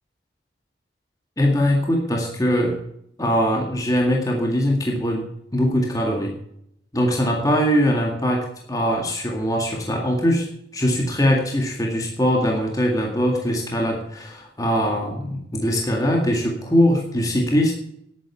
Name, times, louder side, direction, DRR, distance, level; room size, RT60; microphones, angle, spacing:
voice 1, 1.4-2.8 3.2-6.3 6.9-10.5 10.7-17.7, equal, 20° left, 0 dB, 2.0 m, -21 dB
10.5 x 9.5 x 8.4 m, 0.72 s
head